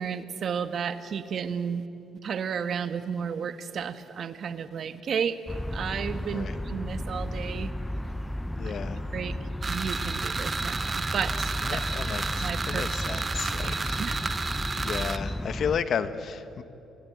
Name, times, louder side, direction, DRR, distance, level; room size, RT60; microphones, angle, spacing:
voice 1, 0.0-1.9 2.2-7.7 8.6-8.7 9.1-9.4 9.7-12.1 12.4-13.2 13.5-14.2, right 7 dB, 60° right, 11 dB, 1.3 m, -33 dB
sound 1, 5.5-15.8, left 1 dB, 10° left, 0.8 m, -33 dB
voice 2, 8.6-9.1 11.6-14.0 14.7-16.6, left 7 dB, 60° left, 12 dB, 1.4 m, -33 dB
sound 2, 9.6-15.2, right 4 dB, 35° right, 1.1 m, -32 dB
29.0 x 17.0 x 9.5 m, 2.8 s
cardioid pair, 90°, 0 cm